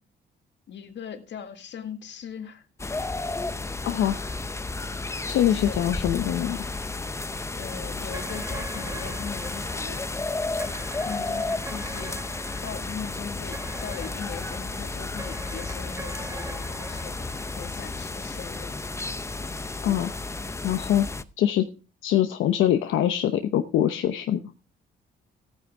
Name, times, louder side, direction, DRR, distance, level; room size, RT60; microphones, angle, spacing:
voice 1, 0.7-2.7 5.4-5.8 7.6-10.0 11.0-12.3 12.6-18.8, left 7 dB, 65° left, 7 dB, 1.8 m, -40 dB
sound 1, 2.8-21.2, left 3 dB, 15° left, 0.7 m, -32 dB
voice 2, 3.8-4.2 5.3-6.6 19.8-20.1 20.6-21.1 21.4-21.7 22.0-24.4, left 11 dB, 80° left, 7 dB, 0.9 m, -23 dB
sound 2, 8.1-18.5, right 2 dB, 15° right, 1.1 m, -43 dB
15.0 x 9.4 x 3.5 m, 0.35 s
cardioid pair, 90°, 20 cm